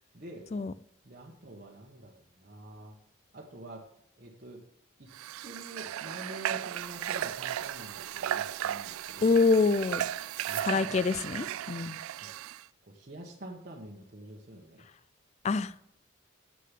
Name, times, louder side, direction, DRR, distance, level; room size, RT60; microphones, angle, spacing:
voice 1, 0.1-0.4 1.0-2.9 3.3-3.8 4.2-4.6 5.0-5.1 5.4-9.4 10.5-11.0 12.1-12.3 12.8-14.9, right 1 dB, 40° right, 1.1 m, -46 dB
Water / Water tap faucet, 5.1-12.6, right 11 dB, 90° right, 0.3 m, -36 dB
sound 1, 6.7-10.6, right 11 dB, 70° right, 1.4 m, -48 dB
voice 2, 9.2-10.0 10.6-12.0 15.4-15.7, left 4 dB, 30° left, 0.3 m, -26 dB
7.7 x 6.6 x 7.5 m
head